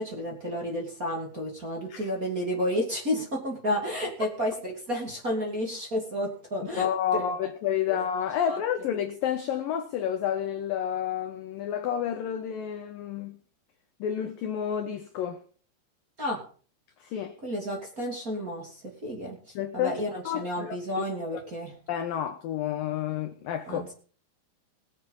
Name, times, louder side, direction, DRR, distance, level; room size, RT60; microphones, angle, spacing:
voice 1, 0.0-6.9 7.1-7.2 7.9-8.0 8.4-8.6 16.2-16.4 17.4-21.7 23.7-23.9, equal, 25° right, 0 dB, 2.6 m, -31 dB
voice 2, 6.8-13.4 14.0-15.4 17.0-17.3 19.6-20.0 20.3-21.0 21.9-23.9, left 9 dB, 80° left, 7 dB, 2.0 m, -30 dB
20.5 x 7.4 x 5.6 m, 0.41 s
omnidirectional pair, 5.4 m